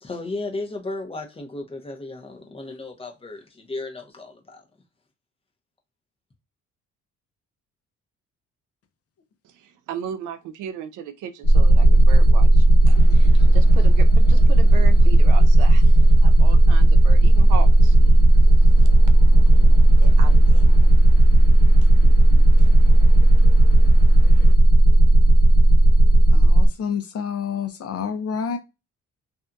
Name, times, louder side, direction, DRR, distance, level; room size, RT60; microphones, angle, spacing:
voice 1, 0.0-4.6, left 2 dB, 20° left, 0.8 m, -34 dB
voice 2, 9.4-18.0 18.8-18.9 20.0-20.8, right 8 dB, 80° right, 0.5 m, -36 dB
sound 1, 11.4-26.7, right 1 dB, 65° left, 1.2 m, -13 dB
sound 2, 12.8-24.5, equal, 15° right, 0.9 m, -42 dB
voice 3, 26.3-28.6, left 7 dB, 50° left, 0.7 m, -28 dB
2.7 x 2.5 x 2.3 m
cardioid pair, 90°, 30 cm